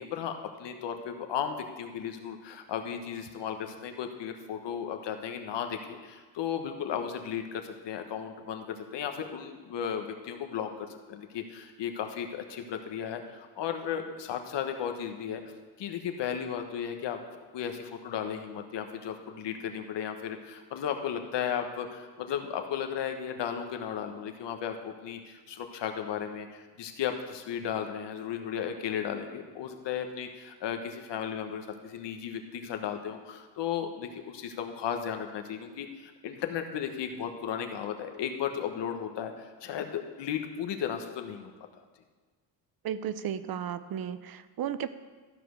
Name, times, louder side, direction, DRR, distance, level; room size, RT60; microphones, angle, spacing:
voice 1, 0.0-15.4 15.8-17.2 17.5-41.5, left 8 dB, 70° left, 5 dB, 1.2 m, -35 dB
voice 2, 42.8-44.9, right 9 dB, 55° right, 13 dB, 0.6 m, -34 dB
13.5 x 5.1 x 6.3 m, 1.4 s
cardioid pair, 105°, 44 cm